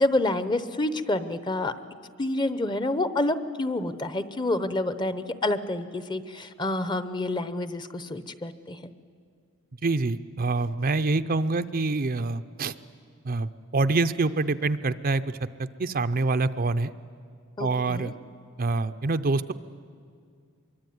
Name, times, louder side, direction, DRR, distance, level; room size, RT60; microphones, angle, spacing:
voice 1, 0.0-1.7 2.2-8.8 17.6-18.1, left 2 dB, 20° left, 12 dB, 0.9 m, -28 dB
voice 2, 9.8-12.7 13.2-16.9 17.6-18.1 18.6-19.5, right 3 dB, 40° right, 10 dB, 0.6 m, -26 dB
24.5 x 23.0 x 9.4 m, 2.2 s
head